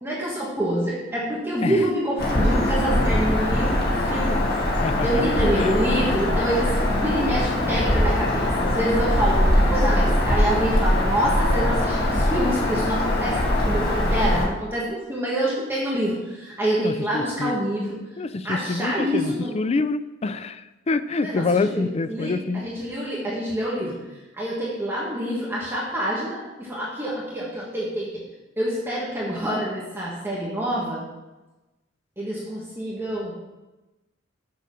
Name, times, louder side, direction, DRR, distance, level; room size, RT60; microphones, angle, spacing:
voice 1, 0.0-4.4 5.0-18.0 18.4-19.6 21.2-24.0 24.3-28.2 28.6-31.1 32.2-33.3, equal, 10° right, -6 dB, 1.6 m, -26 dB
Bird vocalization bird call bird song, 2.2-14.5, left 1 dB, 55° left, 1.9 m, -22 dB
voice 2, 16.8-17.6 18.2-22.6, left 3 dB, 30° left, 13 dB, 0.4 m, -26 dB
6.8 x 6.5 x 6.3 m, 1.1 s
head